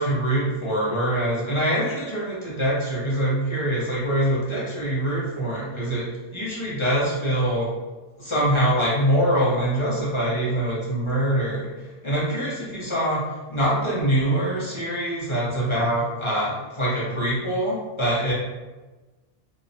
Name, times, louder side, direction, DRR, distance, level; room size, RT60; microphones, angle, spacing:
voice 1, 0.0-7.7 8.2-11.7 12.0-13.2 13.5-18.3, right 1 dB, 35° left, -7 dB, 0.6 m, -24 dB
2.8 x 2.1 x 2.6 m, 1.2 s
omnidirectional pair, 1.1 m